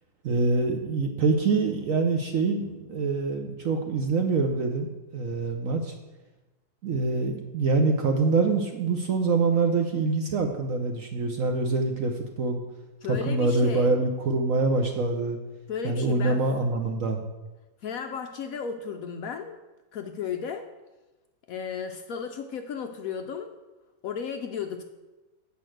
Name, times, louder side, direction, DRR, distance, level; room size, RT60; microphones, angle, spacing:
voice 1, 0.2-5.9 6.8-12.6 13.1-15.4 15.8-17.2, right 3 dB, 60° right, 4 dB, 0.9 m, -25 dB
voice 2, 13.0-13.9 15.7-16.4 17.8-19.6 19.9-20.7 21.5-23.5 24.0-24.8, left 7 dB, 70° left, 6 dB, 0.8 m, -34 dB
8.4 x 5.2 x 7.7 m, 1.1 s
omnidirectional pair, 2.1 m